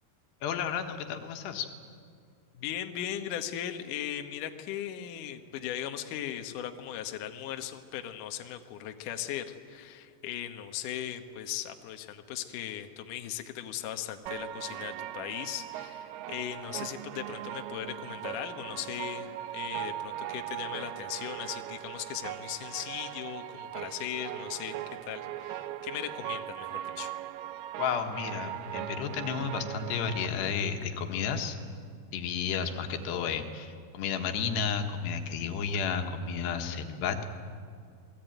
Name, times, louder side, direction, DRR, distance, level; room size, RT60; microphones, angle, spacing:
voice 1, 0.4-1.7 27.8-31.6 32.1-37.3, left 6 dB, 80° left, 5 dB, 3.5 m, -32 dB
voice 2, 2.5-24.8 25.1-27.1, left 11 dB, 65° left, 6 dB, 2.3 m, -38 dB
sound 1, 14.3-30.3, right 13 dB, 75° right, 2.6 m, -39 dB
28.0 x 20.0 x 9.2 m, 2.2 s
omnidirectional pair, 4.9 m